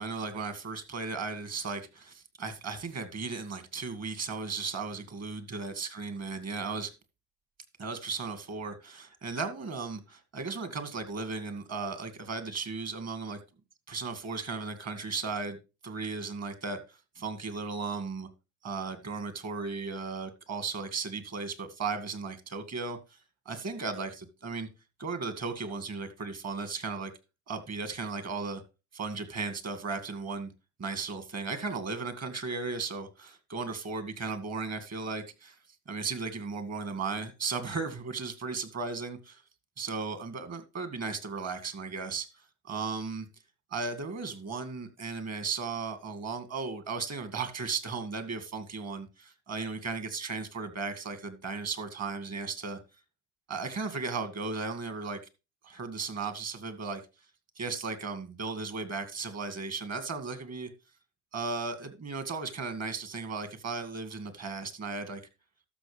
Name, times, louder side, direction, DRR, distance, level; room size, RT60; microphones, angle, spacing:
voice 1, 0.0-6.9 7.8-13.4 13.9-15.6 15.8-18.3 18.6-23.0 23.5-24.7 25.0-27.1 27.5-28.6 28.9-30.5 30.8-35.6 35.9-39.4 39.8-42.3 42.6-43.3 43.7-52.8 53.5-55.2 55.6-57.0 57.6-60.7 61.3-65.2, right 4 dB, 40° right, 2.2 m, -36 dB
12.5 x 6.5 x 3.4 m
supercardioid pair, 85°, 39 cm